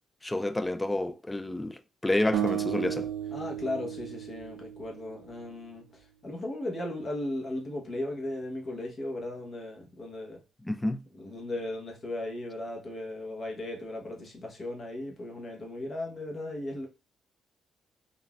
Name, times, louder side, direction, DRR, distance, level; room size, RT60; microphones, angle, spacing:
voice 1, 0.2-3.1 10.7-11.0, left 1 dB, 10° left, 0.3 m, -29 dB
sound 1, 2.3-5.5, right 10 dB, 85° right, 0.4 m, -34 dB
voice 2, 3.3-10.4 11.2-16.9, left 1 dB, 40° left, 1.0 m, -36 dB
3.8 x 2.5 x 2.3 m
cardioid pair, 90°, 0 cm